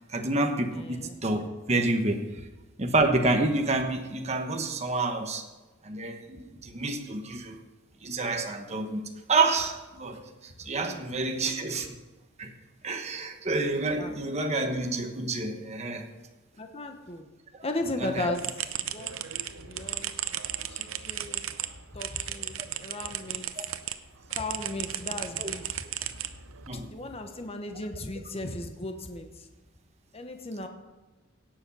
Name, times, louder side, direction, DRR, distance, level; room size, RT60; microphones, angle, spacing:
voice 1, 0.1-2.2 2.8-5.4 5.8-7.6 8.0-9.0 9.3-12.0 12.4-12.5 12.8-16.1 18.0-18.3 23.6-23.7 25.4-25.5 26.7-26.9, right 2 dB, 35° right, 4 dB, 1.1 m, -28 dB
voice 2, 0.7-1.1 10.9-11.0 14.0-14.1 16.6-17.3 17.6-18.5 18.8-19.2 19.6-20.1 20.7-21.5 21.9-23.5 24.3-25.9 26.7-29.5 30.1-30.7, left 2 dB, 30° left, 5 dB, 1.1 m, -36 dB
sound 1, 18.3-24.0 24.3-26.7, right 11 dB, 85° right, 0.7 m, -35 dB
17.5 x 7.0 x 5.5 m, 1.2 s
head